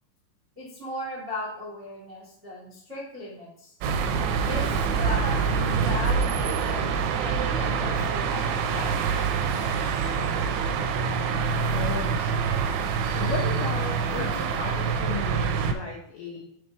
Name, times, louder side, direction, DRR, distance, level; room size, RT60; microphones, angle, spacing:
voice 1, 0.5-3.7 4.4-6.9 7.2-9.7 14.2-14.4, left 2 dB, 40° right, -7 dB, 0.9 m, -37 dB
sound 1, 3.8-15.7, right 6 dB, 80° right, 2.8 m, -26 dB
voice 2, 11.7-12.5 13.1-16.4, left 5 dB, 75° left, -4 dB, 2.3 m, -35 dB
7.8 x 3.5 x 4.6 m, 0.72 s
omnidirectional pair, 5.7 m